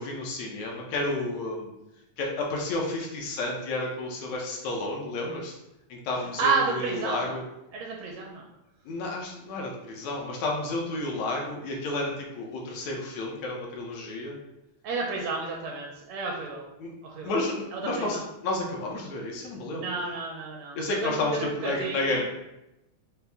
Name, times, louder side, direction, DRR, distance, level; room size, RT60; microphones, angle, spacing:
voice 1, 0.0-1.7 2.2-5.6 5.9-7.4 8.9-14.4 16.8-16.9 17.2-19.9 20.8-22.2, left 2 dB, 75° left, -1 dB, 1.9 m, -31 dB
voice 2, 6.4-7.3 7.7-8.4 14.8-16.6 17.0-17.3 17.7-18.2 19.7-22.2, right 4 dB, 75° right, -1 dB, 1.6 m, -31 dB
5.5 x 2.0 x 3.4 m, 0.91 s
omnidirectional pair, 3.3 m